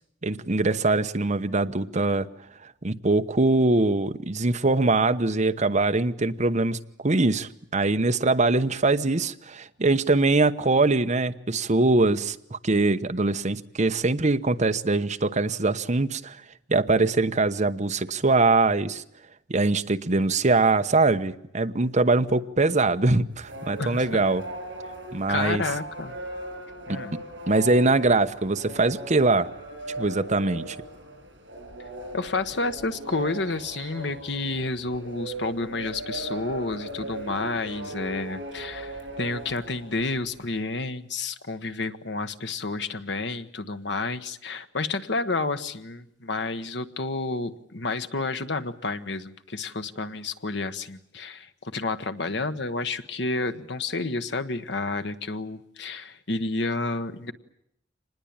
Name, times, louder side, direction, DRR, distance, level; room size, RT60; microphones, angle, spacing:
voice 1, 0.2-2.3 2.6-16.4 16.7-19.0 19.5-24.4 25.1-25.6 26.9-27.0 27.5-29.5 30.0-30.8, right 3 dB, 40° right, 1.0 m, -23 dB
sound 1, 23.3-40.3, right 1 dB, 75° right, 6.5 m, -38 dB
voice 2, 25.3-26.2 26.9-27.2 32.1-57.3, left 3 dB, 65° left, 1.3 m, -30 dB
25.5 x 20.0 x 8.8 m
head